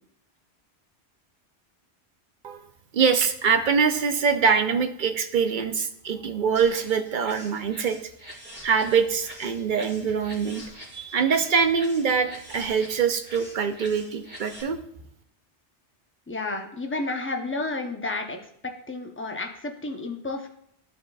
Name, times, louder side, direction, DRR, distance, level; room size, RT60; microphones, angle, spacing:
voice 1, 2.9-8.0 8.6-10.6 10.9-14.8, right 6 dB, 55° right, 8 dB, 0.7 m, -24 dB
sound 1, 6.5-14.6, equal, 10° right, 1.7 m, -44 dB
voice 2, 16.3-18.4 18.6-20.5, left 2 dB, 15° left, 3 dB, 0.6 m, -31 dB
12.5 x 5.0 x 2.4 m, 0.70 s
omnidirectional pair, 1.1 m